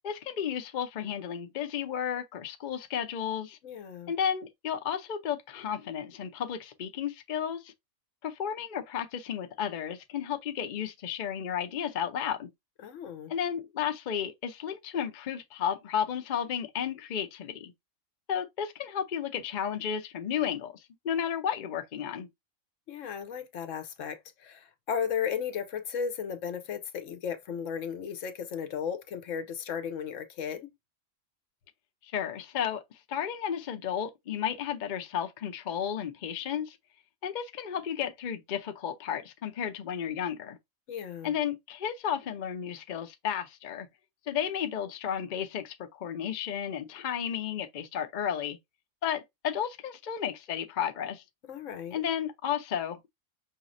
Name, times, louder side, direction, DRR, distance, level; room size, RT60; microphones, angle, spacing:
voice 1, 0.0-3.6 4.1-7.7 8.2-12.5 13.3-17.7 18.3-22.3 32.0-36.8 37.2-40.6 41.2-43.9 44.3-48.6 49.0-51.2 51.9-53.1, left 8 dB, 50° left, 0.6 m, -33 dB
voice 2, 3.6-4.1 12.8-13.3 22.9-30.7 40.9-41.3 51.5-52.0, left 7 dB, 70° left, 1.0 m, -35 dB
5.5 x 3.1 x 2.5 m
omnidirectional pair, 1.5 m